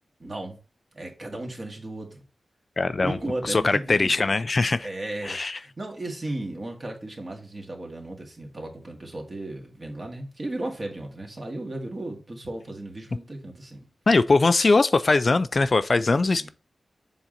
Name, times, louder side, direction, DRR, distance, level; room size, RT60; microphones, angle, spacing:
voice 1, 0.2-0.6 0.9-2.2 3.0-4.5 4.8-13.8 16.2-16.5, right 2 dB, 35° right, 1.8 m, -35 dB
voice 2, 2.8-3.2 3.4-4.9 5.2-5.6 14.1-16.5, left 3 dB, 40° left, 0.3 m, -21 dB
7.2 x 3.9 x 4.3 m
wide cardioid pair, 135°, 0 cm